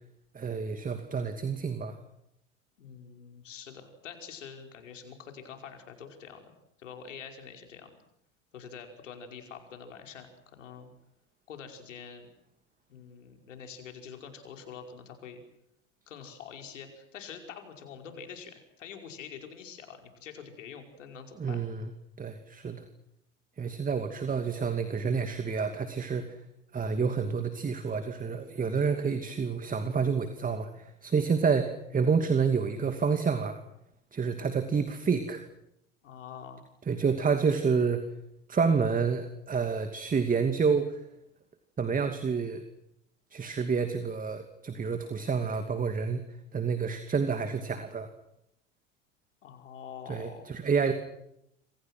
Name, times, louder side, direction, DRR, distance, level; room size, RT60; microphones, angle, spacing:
voice 1, 0.3-2.0 21.4-21.9 22.2-22.8 23.6-26.4 26.7-33.6 34.1-35.4 36.9-38.0 38.5-41.0 41.8-42.6 43.3-46.2 46.5-48.1 50.1-50.9, right 5 dB, 20° right, 8 dB, 2.6 m, -29 dB
voice 2, 2.8-6.5 6.8-8.0 8.5-10.9 11.5-12.3 12.9-15.4 16.1-21.6 36.0-36.6 49.4-50.5, left 7 dB, 80° left, 5 dB, 5.4 m, -46 dB
28.0 x 27.0 x 6.3 m, 0.80 s
hypercardioid pair, 85°, 37 cm